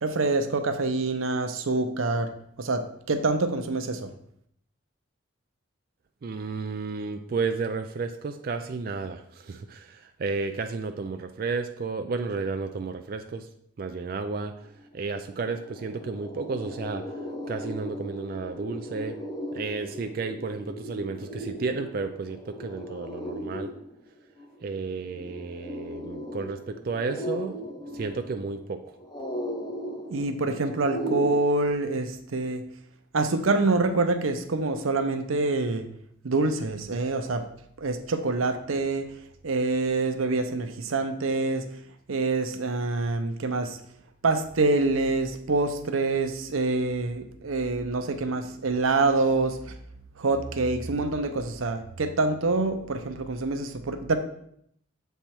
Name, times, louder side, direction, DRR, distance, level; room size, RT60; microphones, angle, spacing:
voice 1, 0.0-2.3 2.6-4.1 30.1-32.6 33.1-35.9 36.2-37.4 37.8-39.1 39.4-41.6 42.1-43.8 44.2-49.8 50.2-54.2, right 3 dB, 90° right, 8 dB, 0.7 m, -26 dB
voice 2, 6.2-13.5 13.8-14.5 14.9-17.1 17.5-19.2 19.5-23.7 24.6-27.6 27.9-28.9, right 4 dB, 45° right, 6 dB, 0.3 m, -32 dB
sound 1, 14.8-14.9 15.2-31.3, equal, 20° left, 0.9 m, -37 dB
7.2 x 3.4 x 4.3 m, 0.70 s
head